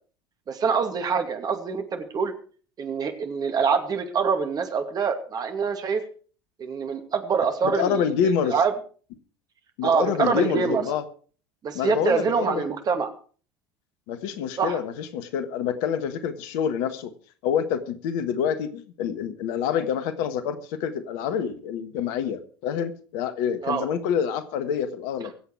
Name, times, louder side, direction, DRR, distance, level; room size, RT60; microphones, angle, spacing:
voice 1, 0.5-2.3 2.8-6.0 6.6-8.7 9.8-10.9 11.6-13.1 14.6-14.8 23.6-23.8, right 6 dB, 30° right, 7 dB, 2.5 m, -25 dB
voice 2, 7.6-8.5 9.8-11.0 11.7-12.7 14.1-17.1 17.4-25.3, left 8 dB, 55° left, 12 dB, 1.5 m, -27 dB
24.0 x 8.2 x 4.8 m, 0.42 s
figure-of-eight pair, 70°, 13 cm